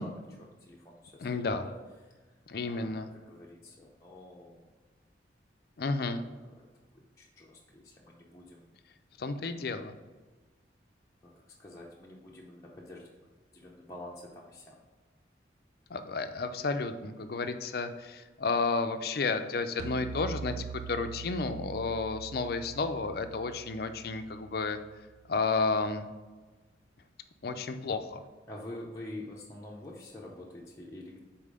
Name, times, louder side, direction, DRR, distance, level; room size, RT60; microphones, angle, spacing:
voice 1, 0.0-1.8 2.6-4.7 6.1-6.7 6.9-8.6 11.2-13.1 13.5-14.8 28.5-31.2, left 1 dB, 15° left, -5 dB, 0.7 m, -47 dB
voice 2, 1.2-1.7 2.5-3.1 5.8-6.2 9.2-9.9 15.9-24.8 25.3-26.1 27.4-28.2, left 4 dB, 55° left, 9 dB, 0.5 m, -32 dB
sound 1, 19.8-25.2, right 6 dB, 55° right, 0.3 m, -43 dB
5.5 x 4.3 x 4.9 m, 1.3 s
head